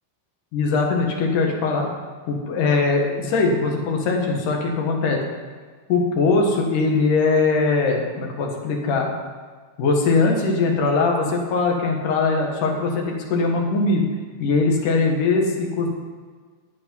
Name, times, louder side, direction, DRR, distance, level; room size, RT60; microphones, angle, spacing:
voice 1, 0.5-1.9 2.3-5.2 5.9-9.1 9.8-14.1 14.4-15.9, left 3 dB, 60° left, 1 dB, 2.8 m, -21 dB
12.0 x 8.5 x 5.5 m, 1.6 s
omnidirectional pair, 4.5 m